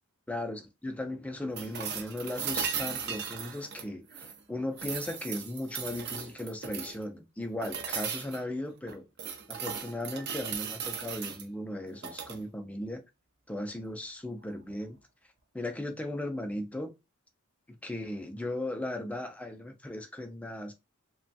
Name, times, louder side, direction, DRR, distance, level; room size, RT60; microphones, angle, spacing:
voice 1, 0.3-9.1 9.5-13.0 13.5-15.0 15.5-16.9 17.7-20.7, left 1 dB, 5° left, 0.4 m, -37 dB
sound 1, 1.6-4.4 4.8-7.0 7.6-8.4 8.9-11.4 11.9-12.4 14.4-14.5, right 7 dB, 50° right, 0.5 m, -37 dB
3.0 x 2.2 x 2.6 m
head